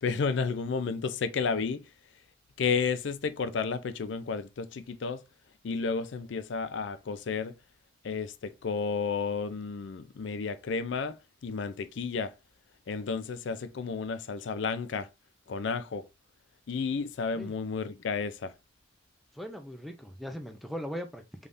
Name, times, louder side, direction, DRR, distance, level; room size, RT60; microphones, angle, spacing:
voice 1, 0.0-1.8 2.6-5.2 5.6-7.5 8.0-11.2 11.4-12.3 12.9-15.1 15.5-16.1 16.7-18.5, left 5 dB, 65° left, 0.4 m, -32 dB
voice 2, 19.3-21.5, equal, ahead, 0.5 m, -39 dB
3.5 x 3.4 x 2.5 m
head